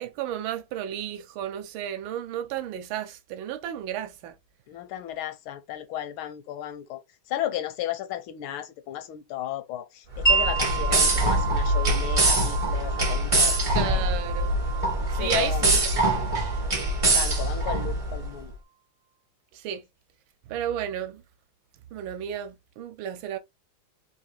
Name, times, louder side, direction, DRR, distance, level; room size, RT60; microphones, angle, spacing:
voice 1, 0.0-4.3 10.9-11.0 13.7-14.6 15.1-16.4 19.5-19.8 20.5-21.2 21.9-23.4, right 10 dB, 80° right, 1.3 m, -33 dB
voice 2, 4.7-7.0 7.3-14.1 15.2-15.7 17.1-18.5, left 12 dB, 80° left, 1.5 m, -34 dB
sound 1, 10.1-18.3, right 1 dB, 35° right, 0.5 m, -24 dB
Wind chime, 10.3-17.9, right 5 dB, 40° left, 0.5 m, -31 dB
3.8 x 2.7 x 3.2 m
omnidirectional pair, 2.2 m